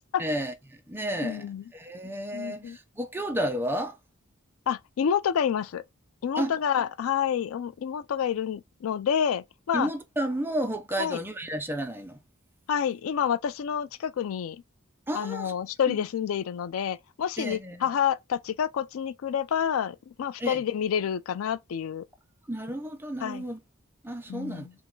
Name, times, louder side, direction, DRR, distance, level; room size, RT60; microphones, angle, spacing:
voice 1, 0.2-1.5 1.7-4.0 6.4-6.5 9.7-12.2 15.1-15.5 15.9-16.0 17.4-17.8 20.4-20.6 22.5-23.6 24.0-24.7, right 1 dB, 10° right, 0.6 m, -32 dB
voice 2, 1.2-1.6 2.3-2.8 4.7-5.8 6.2-9.9 11.0-11.2 12.7-14.6 15.1-22.0 23.2-23.4 24.3-24.7, left 8 dB, 85° left, 0.4 m, -28 dB
3.4 x 3.0 x 3.7 m
head